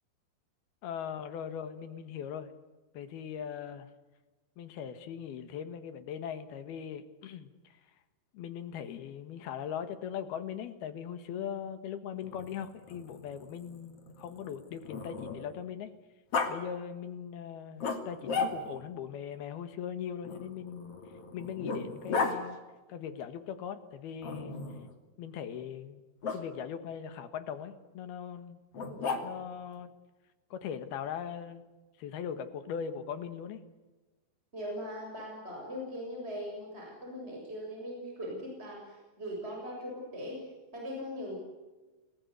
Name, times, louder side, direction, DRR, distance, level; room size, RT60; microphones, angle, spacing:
voice 1, 0.8-2.5 2.9-3.9 4.6-7.8 8.3-15.9 16.5-21.0 21.3-22.6 22.9-24.6 25.2-26.0 26.3-28.6 29.2-29.9 30.5-31.6 32.0-33.6, left 8 dB, 70° left, 10 dB, 3.4 m, -40 dB
Growling, 12.2-15.6 16.3-16.5 17.8-18.9 20.2-22.4 24.2-24.9 26.2-26.4 28.7-29.6, left 4 dB, 40° left, 3.3 m, -35 dB
voice 2, 34.5-41.4, equal, 15° right, 0 dB, 7.1 m, -40 dB
29.5 x 20.0 x 8.2 m, 1.2 s
omnidirectional pair, 4.7 m